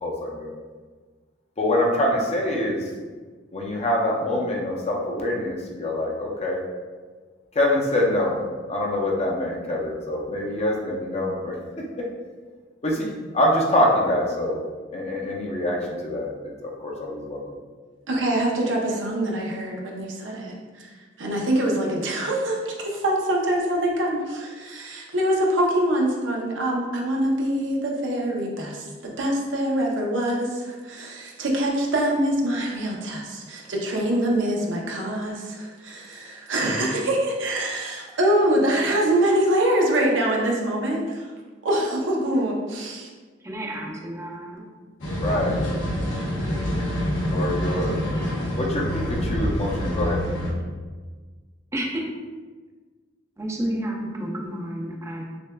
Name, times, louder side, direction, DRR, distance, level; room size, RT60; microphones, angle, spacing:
voice 1, 0.0-0.5 1.6-2.9 3.5-6.6 7.5-8.3 8.7-11.5 12.8-14.6 14.9-15.8 16.0-16.3 16.6-17.4 45.1-45.6 47.3-48.0 48.6-50.2, left 1 dB, 35° left, -2 dB, 0.6 m, -25 dB
voice 2, 18.1-20.9 21.2-28.9 29.2-41.3 41.6-43.1, right 1 dB, 85° right, -1 dB, 0.7 m, -24 dB
voice 3, 43.4-44.7 51.7-52.1 53.4-55.2, right 1 dB, 15° right, -1 dB, 0.5 m, -30 dB
sound 1, 45.0-50.5, equal, 80° left, 1.0 m, -26 dB
6.2 x 2.3 x 2.2 m, 1.4 s
head